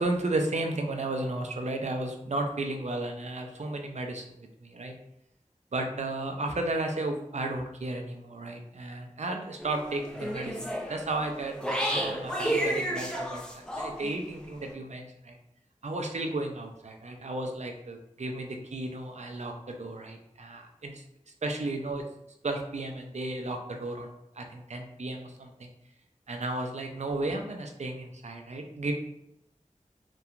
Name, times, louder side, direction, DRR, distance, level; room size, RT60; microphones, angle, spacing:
voice 1, 0.0-4.9 5.7-15.4 15.8-21.0 21.4-22.0 22.4-24.1 24.4-25.7 26.3-28.9, right 2 dB, 60° right, 3 dB, 0.4 m, -34 dB
sound 1, 9.6-14.2, equal, 5° left, 0.5 m, -32 dB
2.8 x 2.2 x 2.4 m, 0.81 s
wide cardioid pair, 45°, 13 cm